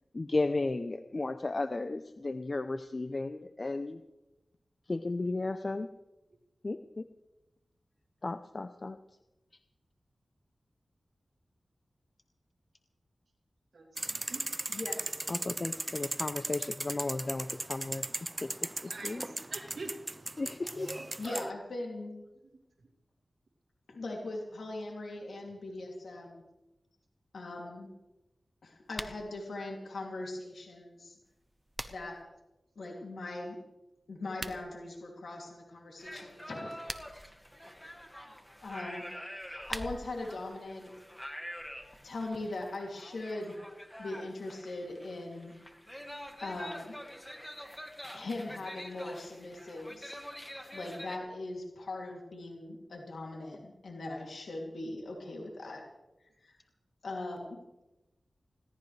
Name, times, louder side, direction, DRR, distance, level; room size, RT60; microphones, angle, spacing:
voice 1, 0.1-4.0 4.9-5.9 6.6-7.0 8.2-9.0 15.3-18.1 18.4-18.7 19.0-19.2 20.4-20.9, left 2 dB, 50° left, 9 dB, 0.7 m, -34 dB
voice 2, 13.7-14.7 18.8-19.9 20.3-20.5, right 3 dB, 70° right, -3 dB, 2.7 m, -46 dB
sound 1, 14.0-21.5, right 2 dB, 30° right, 0.4 m, -38 dB
voice 3, 14.7-15.1 21.2-22.2 23.9-26.4 27.3-27.9 28.6-31.2 31.9-32.3 32.8-33.6 34.1-36.8 38.6-40.9 42.0-43.6 44.0-45.5 46.4-47.0 48.1-50.1 50.7-55.8 56.4-56.6 57.0-57.6, left 2 dB, 85° left, 0 dB, 2.8 m, -40 dB
sound 2, 28.9-29.2 31.3-32.2 34.2-34.6 36.6-37.3 39.3-40.3, right 1 dB, 15° right, 1.2 m, -42 dB
sound 3, 36.0-51.2, equal, 10° left, 2.0 m, -46 dB
21.5 x 17.0 x 3.3 m, 0.98 s
cardioid pair, 50°, 0 cm